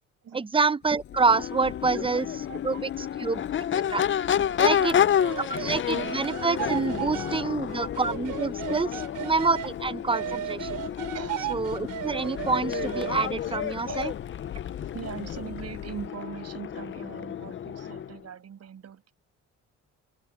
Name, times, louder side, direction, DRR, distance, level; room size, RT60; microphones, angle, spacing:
voice 1, 0.3-2.3 2.6-2.7 3.2-3.4 3.9-4.0 4.6-4.9 5.5-10.7 11.5-14.1, right 4 dB, 15° right, 0.7 m, -27 dB
sound 1, 0.8-16.1, left 11 dB, 70° left, 5.4 m, -46 dB
Crowd / Race car auto racing / Accelerating revving vroom, 1.1-18.2, left 9 dB, 40° left, 0.6 m, -30 dB
voice 2, 1.9-3.5 4.3-5.0 9.0-9.1 11.1-11.5 13.4-14.1 14.7-19.1, right 8 dB, 55° right, 7.7 m, -42 dB
sound 2, 5.2-9.7 10.1-13.3, right 12 dB, 80° right, 3.5 m, -35 dB
open air
cardioid pair, 90°, 30 cm